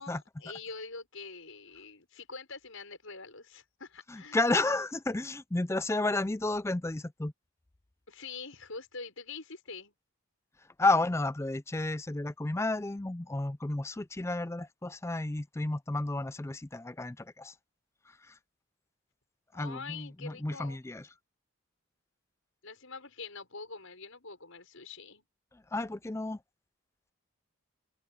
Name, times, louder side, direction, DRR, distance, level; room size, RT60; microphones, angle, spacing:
voice 1, 0.0-4.6 8.1-9.9 19.5-20.8 22.6-25.3, left 4 dB, 70° left, 6.1 m, -45 dB
voice 2, 4.1-7.3 10.8-17.5 18.1-18.4 19.5-21.1 25.5-26.4, left 2 dB, 10° left, 0.4 m, -32 dB
head